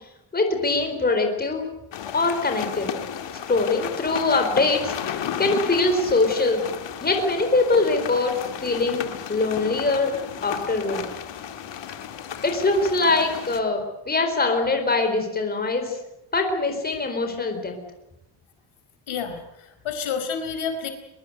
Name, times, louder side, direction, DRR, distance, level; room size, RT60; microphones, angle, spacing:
voice 1, 0.3-1.6 2.1-2.9 3.5-4.9 5.4-6.6 7.0-8.3 8.6-10.1 10.4-11.0 12.4-16.0 16.3-17.7, left 3 dB, 20° left, 5 dB, 4.2 m, -22 dB
sound 1, 1.9-13.6, left 8 dB, 65° left, 2.2 m, -33 dB
voice 2, 19.1-20.9, left 6 dB, 85° left, 7 dB, 4.7 m, -29 dB
23.0 x 22.0 x 8.2 m, 0.88 s
wide cardioid pair, 175°, 47 cm